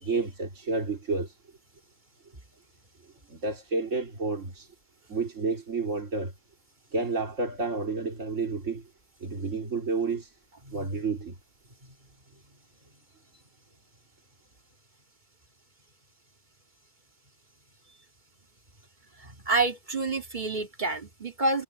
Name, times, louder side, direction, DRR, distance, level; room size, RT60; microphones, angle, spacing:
voice 1, 0.0-1.3 3.3-4.7 5.1-6.3 6.9-8.8 9.2-10.3 10.7-11.3, right 3 dB, 80° right, 3.6 m, -30 dB
voice 2, 19.2-21.6, right 3 dB, 35° right, 2.6 m, -28 dB
omnidirectional pair, 1.3 m